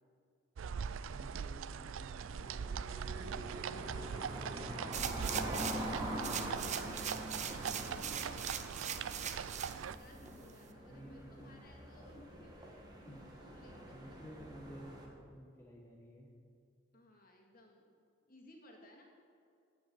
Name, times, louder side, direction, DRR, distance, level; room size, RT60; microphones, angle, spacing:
sound 1, 0.6-9.9, right 7 dB, 85° right, 0.4 m, -41 dB
voice 1, 1.1-3.6 10.9-11.5 13.1-13.3 13.9-15.0 15.3-16.3, equal, 15° left, -3 dB, 1.2 m, -53 dB
sound 2, 2.2-15.1, equal, 20° right, 2.0 m, -45 dB
voice 2, 4.7-14.2 14.7-15.0 16.9-18.0 18.3-19.0, left 1 dB, 45° left, -1 dB, 2.4 m, -60 dB
sound 3, 4.9-5.9 6.2-9.8 10.3-10.4, right 9 dB, 35° right, 0.7 m, -41 dB
15.5 x 6.1 x 8.9 m, 2.4 s
head